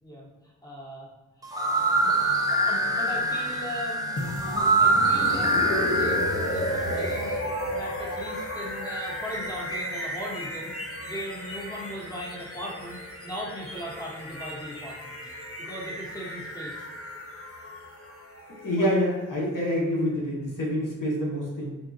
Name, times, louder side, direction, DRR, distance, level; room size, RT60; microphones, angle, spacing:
voice 1, 0.6-1.1 1.4-1.5 2.0-2.1 2.5-4.1 4.4-5.5 5.8-7.4 7.7-10.7 11.0-16.9 18.7-18.8, equal, 10° left, -5 dB, 1.1 m, -38 dB
sound 1, 1.4-7.2, right 2 dB, 10° right, 0.5 m, -24 dB
sound 2, 4.2-20.0, left 1 dB, 45° left, 0.9 m, -34 dB
voice 2, 18.6-21.8, equal, 70° left, -3 dB, 1.1 m, -27 dB
3.7 x 2.4 x 4.0 m, 1.2 s
wide cardioid pair, 75°, 33 cm